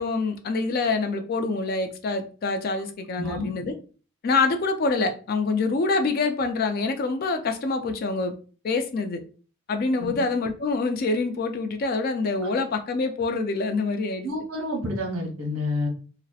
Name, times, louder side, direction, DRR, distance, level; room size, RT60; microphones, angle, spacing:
voice 1, 0.0-3.7 4.2-8.3 8.6-9.2 9.7-14.3, left 3 dB, 45° left, 0.3 m, -26 dB
voice 2, 3.2-3.5 10.0-10.1 14.2-15.9, left 2 dB, 80° right, 0.8 m, -29 dB
2.6 x 2.0 x 2.3 m
head